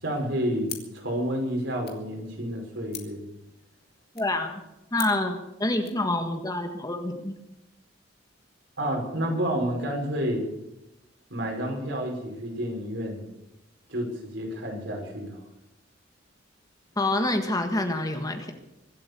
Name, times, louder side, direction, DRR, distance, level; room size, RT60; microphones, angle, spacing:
voice 1, 0.0-3.2 8.8-10.5 11.3-13.2 13.9-15.4, equal, 70° right, 0 dB, 5.7 m, -30 dB
sound 1, 0.6-6.1, left 10 dB, 55° left, 2.6 m, -45 dB
voice 2, 4.1-4.6 4.9-7.4 17.0-18.5, left 2 dB, 20° left, 5 dB, 1.5 m, -27 dB
24.0 x 8.4 x 7.0 m, 0.90 s
head